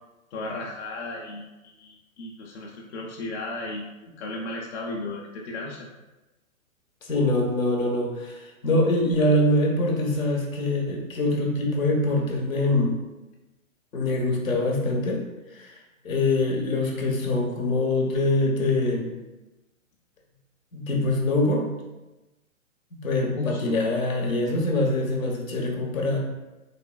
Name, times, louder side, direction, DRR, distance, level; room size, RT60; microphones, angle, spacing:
voice 1, 0.3-5.9 23.3-23.8, left 2 dB, 50° left, -2 dB, 0.6 m, -35 dB
voice 2, 7.0-12.9 13.9-15.2 15.6-15.7 16.0-19.2 20.7-21.7 22.9-26.2, left 2 dB, 75° left, 0 dB, 1.0 m, -24 dB
3.4 x 3.3 x 2.2 m, 1.0 s
figure-of-eight pair, 125°, 41 cm